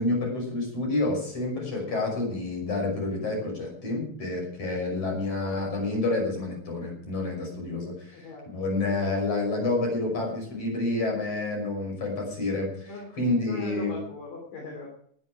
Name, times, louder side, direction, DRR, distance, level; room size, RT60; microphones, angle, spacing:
voice 1, 0.0-8.3 8.5-12.9 13.2-13.9, left 2 dB, 35° left, 1 dB, 6.8 m, -29 dB
voice 2, 8.1-8.5 12.8-13.1 13.4-14.9, left 4 dB, 55° left, -1 dB, 4.6 m, -40 dB
19.0 x 11.0 x 4.9 m, 0.62 s
omnidirectional pair, 5.0 m